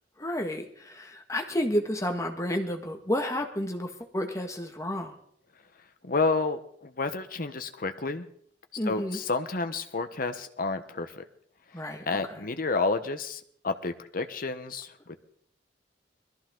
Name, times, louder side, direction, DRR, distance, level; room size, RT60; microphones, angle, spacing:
voice 1, 0.2-5.1 8.8-9.2 11.7-12.4, left 1 dB, 20° left, 4 dB, 1.8 m, -31 dB
voice 2, 6.0-8.3 8.9-11.2 12.1-15.2, left 3 dB, 50° left, 8 dB, 1.2 m, -30 dB
21.0 x 14.5 x 3.9 m, 0.64 s
head